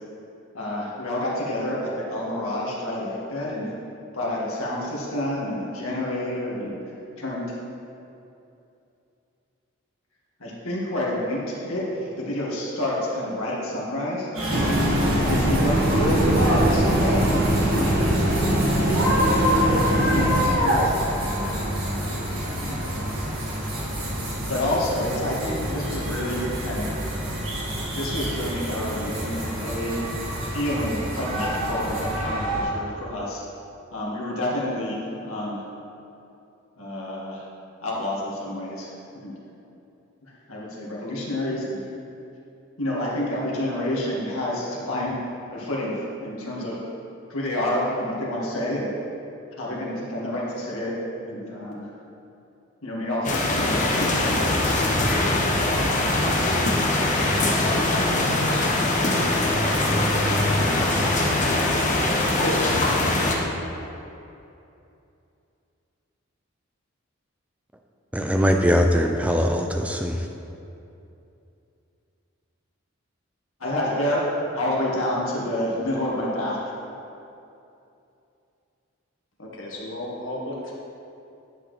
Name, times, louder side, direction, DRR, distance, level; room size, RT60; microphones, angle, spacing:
voice 1, 0.5-3.7 4.1-6.8 7.2-7.5 10.4-14.3 15.1-18.7 20.0-21.5 22.6-23.0 24.5-26.9 27.9-30.0 30.5-33.4 33.9-35.6 36.8-37.4 37.8-38.9 39.2-39.3 40.5-41.8 42.8-45.2 45.5-45.9 46.2-46.7 47.3-48.9 49.6-50.9 51.2-51.9 52.8-55.0 60.6-61.0 73.6-74.2 74.5-76.6, left 1 dB, 85° left, -5 dB, 1.9 m, -28 dB
sound 1, 14.3-32.6, equal, 80° right, 1.8 m, -27 dB
sound 2, 14.5-20.5, right 1 dB, 45° right, 1.3 m, -22 dB
sound 3, 53.2-63.3, left 2 dB, 35° left, 0.9 m, -22 dB
voice 2, 62.4-63.7 79.4-80.7, left 2 dB, 65° left, -3 dB, 1.4 m, -32 dB
voice 3, 68.1-70.3, equal, 5° right, 3 dB, 0.4 m, -21 dB
10.5 x 6.3 x 3.3 m, 2.7 s
head